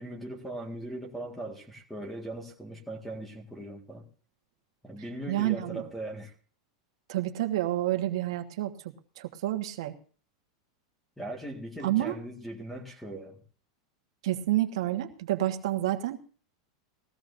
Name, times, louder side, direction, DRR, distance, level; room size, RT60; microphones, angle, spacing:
voice 1, 0.0-4.1 4.8-6.3 11.2-13.4, right 1 dB, 5° left, 1.8 m, -39 dB
voice 2, 5.3-5.8 7.1-9.9 11.8-12.2 14.2-16.2, right 14 dB, 65° right, 1.4 m, -29 dB
19.5 x 15.5 x 2.7 m
supercardioid pair, 170°, 3 cm